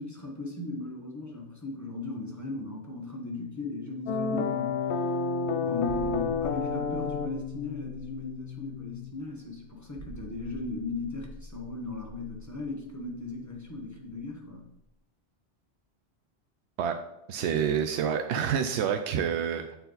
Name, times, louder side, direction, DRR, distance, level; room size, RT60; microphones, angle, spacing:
voice 1, 0.0-5.1 5.6-14.7, left 3 dB, 15° left, -1 dB, 1.2 m, -37 dB
sound 1, 4.1-9.1, left 4 dB, 90° left, 0.9 m, -31 dB
sound 2, 5.9-14.3 14.5-14.7, right 1 dB, 40° right, 0.5 m, -47 dB
voice 2, 17.3-19.8, right 8 dB, 85° right, 6 dB, 0.9 m, -28 dB
8.1 x 4.5 x 3.9 m, 0.85 s
omnidirectional pair, 1.1 m